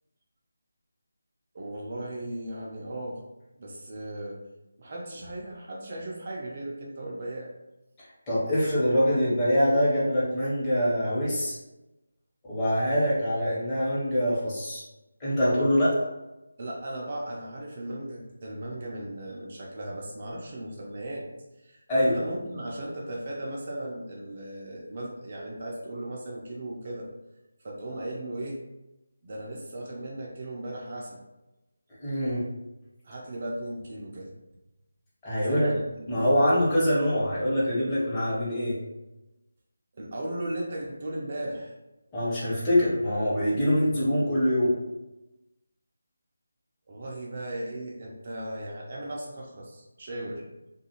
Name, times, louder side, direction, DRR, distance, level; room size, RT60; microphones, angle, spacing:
voice 1, 1.5-3.2 3.6-4.4 4.8-7.5 16.6-21.3 21.6-27.1 27.6-28.6 29.2-31.2 33.0-34.3 35.4-36.3 39.9-41.7 46.9-50.4, right 1 dB, 40° right, -2 dB, 0.5 m, -37 dB
voice 2, 8.3-11.5 12.4-14.8 15.2-16.0 21.9-22.1 32.0-32.4 35.2-35.7 36.1-38.8 42.1-44.7, equal, 15° left, -9 dB, 0.9 m, -24 dB
2.4 x 2.4 x 2.8 m, 0.99 s
figure-of-eight pair, 160°, 0 cm